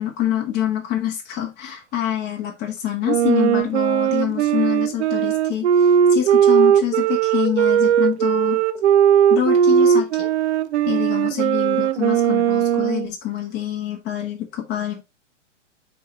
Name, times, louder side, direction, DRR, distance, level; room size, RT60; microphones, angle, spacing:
voice 1, 0.0-8.6 9.3-10.3 10.8-15.0, left 11 dB, 25° left, 1.2 m, -26 dB
Wind instrument woodwind instrument, 3.0-13.1, right 9 dB, 60° right, 0.6 m, -18 dB
8.2 x 3.4 x 4.0 m
hypercardioid pair, 115°, 37 cm